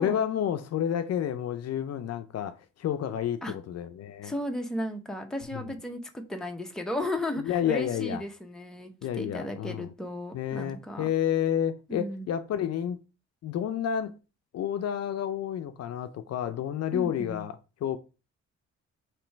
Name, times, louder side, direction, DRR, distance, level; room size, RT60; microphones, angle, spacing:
voice 1, 0.0-4.3 5.5-5.6 7.4-8.2 9.0-9.9 10.3-13.0 13.4-14.1 14.5-18.0, left 9 dB, 55° left, 0.5 m, -30 dB
voice 2, 4.2-11.1 11.9-12.3 16.9-17.5, left 1 dB, ahead, 0.6 m, -35 dB
3.2 x 3.0 x 4.4 m
cardioid pair, 90°, 30 cm